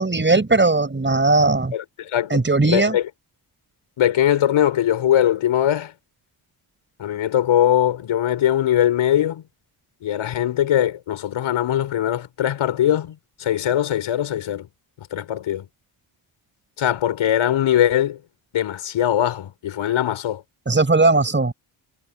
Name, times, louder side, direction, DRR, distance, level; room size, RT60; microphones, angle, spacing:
voice 1, 0.0-1.7 2.3-3.0 20.7-21.5, right 3 dB, 25° right, 5.7 m, -18 dB
voice 2, 1.7-2.4 2.7-3.1 4.0-5.9 7.0-9.4 10.0-14.7 15.1-15.7 16.8-18.2 18.5-20.4, left 11 dB, 75° left, 5.4 m, -21 dB
cardioid pair, 80°, 49 cm